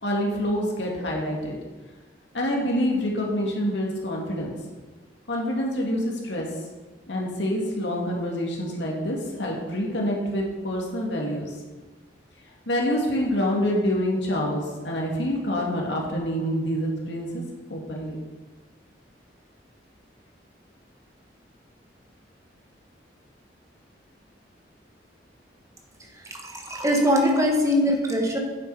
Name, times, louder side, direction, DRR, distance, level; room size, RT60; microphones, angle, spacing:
voice 1, 0.0-1.6 2.3-4.5 5.3-6.5 7.1-11.6 12.7-17.4 17.7-18.2, equal, 80° left, -1 dB, 2.3 m, -26 dB
voice 2, 26.4-28.4, equal, 15° right, 2 dB, 1.2 m, -22 dB
9.3 x 7.4 x 4.8 m, 1.2 s
head